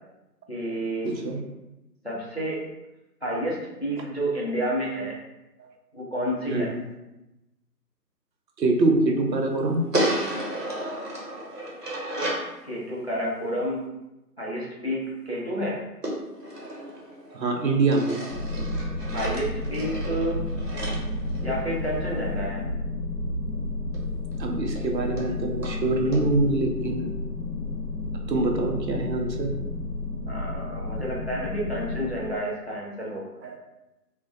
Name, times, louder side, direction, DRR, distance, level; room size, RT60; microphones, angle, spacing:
voice 1, 0.5-1.1 2.0-2.6 3.2-5.2 5.9-6.7 12.6-13.9 14.4-15.8 19.1-20.4 21.4-22.6 30.3-33.2, equal, 45° left, -5 dB, 0.4 m, -30 dB
voice 2, 1.0-1.4 5.6-5.7 6.5-6.7 8.6-9.9 16.7-16.9 17.3-18.3 24.4-27.1 28.3-29.5 33.4-33.6, right 2 dB, 85° right, 3 dB, 0.6 m, -25 dB
sound 1, 9.9-12.5 16.0-17.4 17.9-22.0 23.9-24.0 24.3-24.4 24.8-24.9 25.2-25.3 25.6-25.8 26.1-26.2, right 1 dB, 70° right, 1.0 m, -32 dB
sound 2, 18.3-32.1, left 2 dB, 35° right, 0.7 m, -31 dB
2.4 x 2.1 x 2.4 m, 0.97 s
figure-of-eight pair, 155°, 49 cm